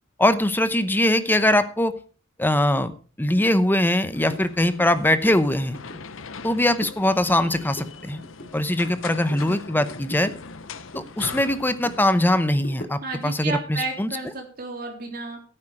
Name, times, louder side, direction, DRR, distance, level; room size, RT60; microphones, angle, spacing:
voice 1, 0.2-2.0 2.4-2.9 3.2-5.8 6.4-8.2 8.5-10.3 10.9-14.1, left 1 dB, 10° left, 12 dB, 0.8 m, -21 dB
sound 1, 3.4-3.5 3.9-4.0 4.3-4.5 4.8-6.0 6.4-7.0 7.3-9.0 9.3-11.1 11.4-13.2, left 1 dB, 50° left, 3.7 m, -41 dB
sound 2, 4.1-12.3, left 4 dB, 80° left, 0.9 m, -40 dB
voice 2, 13.0-15.4, right 3 dB, 50° right, 2 dB, 3.6 m, -32 dB
14.0 x 8.9 x 4.9 m, 0.39 s
head